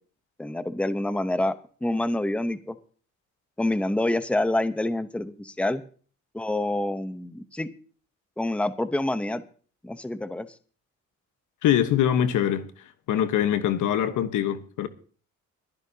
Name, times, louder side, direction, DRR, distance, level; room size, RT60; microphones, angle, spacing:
voice 1, 0.4-1.5 1.8-2.8 3.6-5.8 6.3-7.7 8.4-9.4 9.8-10.5, left 1 dB, 5° left, 0.9 m, -27 dB
voice 2, 11.6-12.7 13.1-14.9, left 10 dB, 85° left, 1.3 m, -23 dB
22.5 x 10.5 x 2.8 m
cardioid pair, 90°, 30 cm